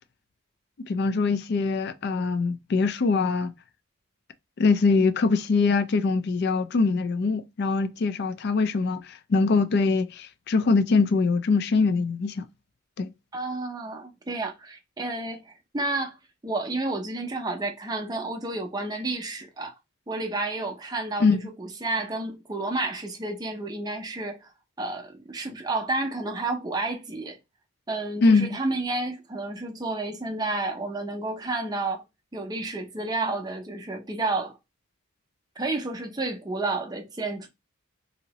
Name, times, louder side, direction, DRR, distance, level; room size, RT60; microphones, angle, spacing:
voice 1, 0.8-3.5 4.6-12.5 13.0-13.1 21.2-21.4 28.2-28.6, left 4 dB, 50° left, 0.3 m, -23 dB
voice 2, 13.3-16.2 16.4-19.7 20.1-24.5 24.8-27.4 27.9-32.0 32.3-34.6 35.6-37.5, right 2 dB, 20° right, 0.5 m, -31 dB
2.8 x 2.7 x 2.9 m
head